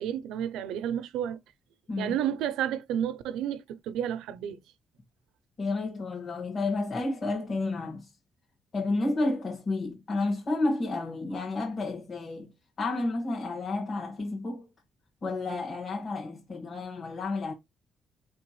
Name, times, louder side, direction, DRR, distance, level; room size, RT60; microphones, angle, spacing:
voice 1, 0.0-1.4 2.0-4.6, right 10 dB, 90° right, 0.5 m, -31 dB
voice 2, 5.6-8.1 8.7-12.5 12.8-14.7 15.2-17.5, left 2 dB, 45° left, 1.7 m, -31 dB
4.3 x 3.4 x 3.0 m
cardioid pair, 90°, 0 cm